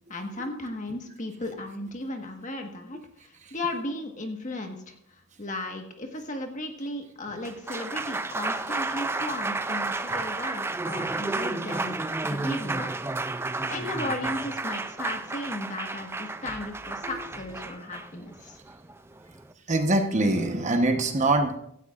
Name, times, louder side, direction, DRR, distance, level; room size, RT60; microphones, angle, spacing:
voice 1, 0.1-3.0 3.5-4.9 5.4-12.0 12.2-12.9 13.7-18.6, left 2 dB, 35° left, 4 dB, 1.5 m, -35 dB
Applause, 7.3-19.5, right 3 dB, 10° right, 0.3 m, -32 dB
voice 2, 19.7-21.6, right 2 dB, 35° right, 5 dB, 1.0 m, -23 dB
16.5 x 13.5 x 2.5 m, 0.72 s
head